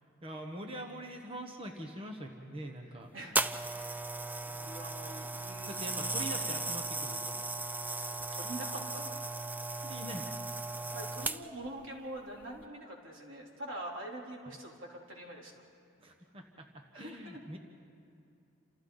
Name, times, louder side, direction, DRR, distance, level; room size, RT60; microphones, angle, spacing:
voice 1, 0.0-3.1 5.7-7.4 9.8-10.3 14.4-14.6 16.0-17.6, right 1 dB, 30° right, 1 dB, 1.3 m, -44 dB
sound 1, 3.4-11.7 12.4-12.6, right 2 dB, 10° right, 0.4 m, -36 dB
voice 2, 4.4-6.6 8.1-9.2 10.9-15.6 16.9-17.4, right 1 dB, 80° right, -1 dB, 3.5 m, -45 dB
29.0 x 27.5 x 4.0 m, 2.6 s
head